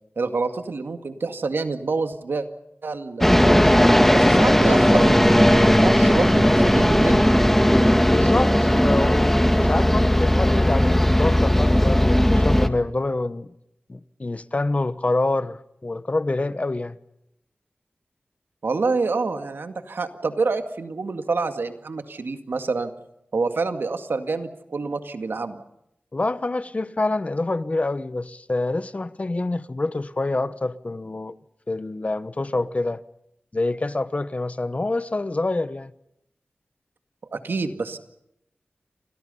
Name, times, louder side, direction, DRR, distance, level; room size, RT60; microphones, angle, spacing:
voice 1, 0.2-2.5 2.8-3.7 4.1-7.3 18.6-22.9 23.3-25.6 37.3-38.0, right 4 dB, 80° right, 2.1 m, -27 dB
sound 1, 3.2-12.7, equal, 5° left, 1.7 m, -17 dB
voice 2, 8.1-13.5 13.9-17.0 26.1-31.4 31.7-33.0 33.5-35.9, left 2 dB, 40° left, 1.1 m, -26 dB
29.0 x 25.0 x 5.6 m
wide cardioid pair, 70°, 4 cm